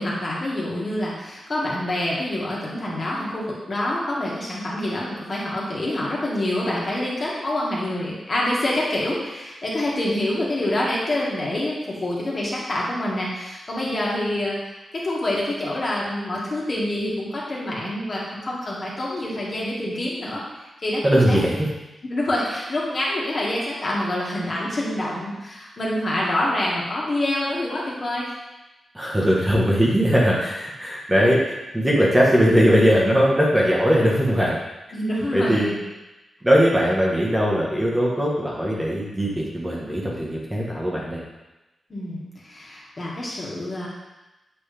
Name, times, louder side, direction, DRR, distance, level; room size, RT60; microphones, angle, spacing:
voice 1, 0.0-14.6 15.0-20.4 20.8-21.0 21.3-21.4 22.1-28.3 34.9-35.8 41.9-43.9, left 1 dB, 40° left, -5 dB, 1.6 m, -26 dB
voice 2, 21.0-21.7 28.9-31.4 31.7-34.6 35.3-35.7 36.4-41.2, equal, 10° right, -4 dB, 1.1 m, -20 dB
7.6 x 4.2 x 3.4 m, 1.0 s
wide cardioid pair, 125°, 0 cm